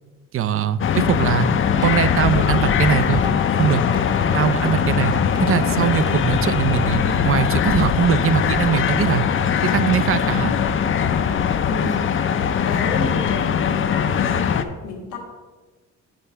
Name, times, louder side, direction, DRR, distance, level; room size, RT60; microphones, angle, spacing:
voice 1, 0.3-1.5 1.8-3.2 3.6-3.8 4.3-5.1 5.4-9.2 9.6-10.6, right 8 dB, 45° right, 15 dB, 0.4 m, -21 dB
sound 1, 0.8-14.6, left 7 dB, 45° left, 0.5 m, -21 dB
sound 2, 1.3-6.9, equal, 15° right, 0.7 m, -35 dB
voice 2, 11.6-12.1 12.6-15.2, left 4 dB, 85° left, -1 dB, 1.4 m, -31 dB
9.0 x 3.3 x 5.6 m, 1.3 s
cardioid pair, 90°, 30 cm